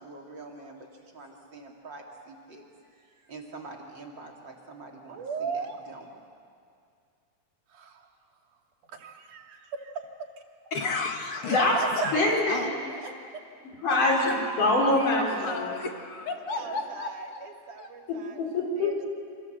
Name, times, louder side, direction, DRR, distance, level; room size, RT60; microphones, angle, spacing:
voice 1, 0.0-6.1, right 3 dB, 35° right, 0 dB, 3.1 m, -46 dB
voice 2, 5.1-5.8 7.7-8.1 8.5-8.6 8.9-10.0 11.4-13.1 16.5-18.4 18.8-19.1, right 5 dB, 80° right, 3 dB, 3.8 m, -37 dB
voice 3, 10.7-12.1 12.5-12.7 13.9-14.3 15.0-17.1 17.8-17.9, left 3 dB, 50° left, 3 dB, 2.3 m, -32 dB
voice 4, 12.1-12.7 13.8-15.8 16.6-16.7 18.1-19.1, left 2 dB, 80° left, -1 dB, 6.5 m, -25 dB
28.5 x 25.5 x 7.9 m, 2.4 s
omnidirectional pair, 3.5 m